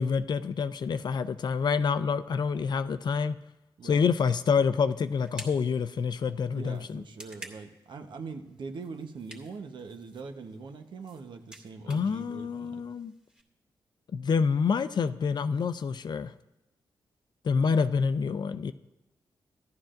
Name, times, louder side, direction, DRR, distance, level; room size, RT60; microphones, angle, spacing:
voice 1, 0.0-3.3 3.8-7.0 11.9-13.1 14.1-16.3 17.4-18.7, left 5 dB, 60° left, 12 dB, 0.5 m, -27 dB
sound 1, 4.2-13.4, right 1 dB, 10° right, 2.1 m, -52 dB
voice 2, 6.5-12.8 17.7-17.8, right 4 dB, 70° right, 5 dB, 1.0 m, -42 dB
14.0 x 11.5 x 2.6 m, 0.96 s
cardioid pair, 60°, 8 cm